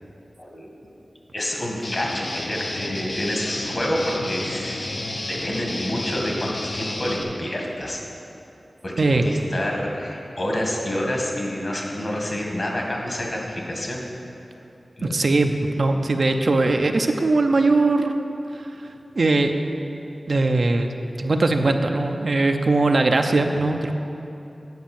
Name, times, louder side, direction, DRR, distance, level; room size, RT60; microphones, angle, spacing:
voice 1, 0.4-0.7 1.3-4.9 5.3-8.0 8.8-14.0 15.0-15.2, left 1 dB, 50° left, -1 dB, 1.8 m, -28 dB
Guitar, 1.8-7.2, left 1 dB, 65° left, 0.9 m, -31 dB
voice 2, 15.0-18.3 19.2-19.5 20.3-23.9, right 2 dB, 70° right, 5 dB, 0.5 m, -20 dB
9.4 x 5.1 x 7.1 m, 2.8 s
wide cardioid pair, 70°, 0 cm